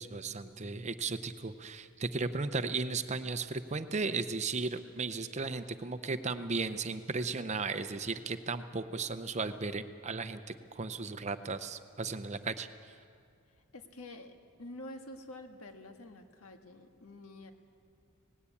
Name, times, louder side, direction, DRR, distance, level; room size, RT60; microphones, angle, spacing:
voice 1, 0.0-12.7, right 4 dB, 30° right, 11 dB, 0.6 m, -35 dB
voice 2, 13.5-14.3 14.6-17.5, left 1 dB, 70° left, 5 dB, 1.6 m, -48 dB
18.5 x 17.0 x 8.4 m, 2.3 s
head